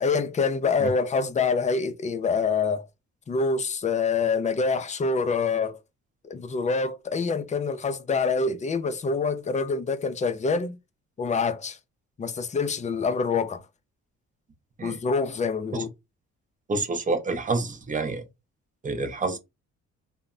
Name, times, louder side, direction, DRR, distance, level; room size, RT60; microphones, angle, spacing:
voice 1, 0.0-2.9 3.3-5.8 6.2-10.8 11.2-11.8 12.2-13.6 14.8-15.9, left 4 dB, 25° left, 0.4 m, -26 dB
voice 2, 16.7-18.2 18.8-19.4, right 3 dB, 25° right, 0.6 m, -28 dB
2.1 x 2.0 x 3.6 m
cardioid pair, 90°, 30 cm